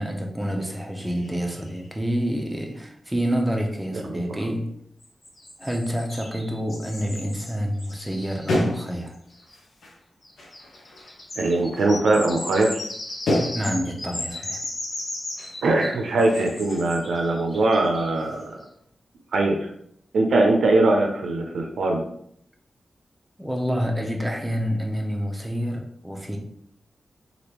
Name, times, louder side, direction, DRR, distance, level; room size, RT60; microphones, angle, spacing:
voice 1, 0.0-4.7 5.6-9.1 13.5-14.6 23.4-26.4, equal, 10° right, 1 dB, 0.7 m, -28 dB
sound 1, 1.0-2.0 2.4-2.5 2.7-2.8 5.0-9.5 10.2-18.4, left 1 dB, 55° left, 0.9 m, -37 dB
sound 2, 7.2-7.3 7.7-10.0 10.4-14.0 14.9-15.1 15.4-17.3 17.5-18.5, left 1 dB, 85° left, 0.7 m, -32 dB
voice 2, 11.4-12.8 15.6-18.6 19.3-19.7 20.1-22.0, right 2 dB, 90° right, 2 dB, 0.4 m, -21 dB
3.3 x 2.4 x 2.9 m, 0.70 s
cardioid pair, 60°, 0 cm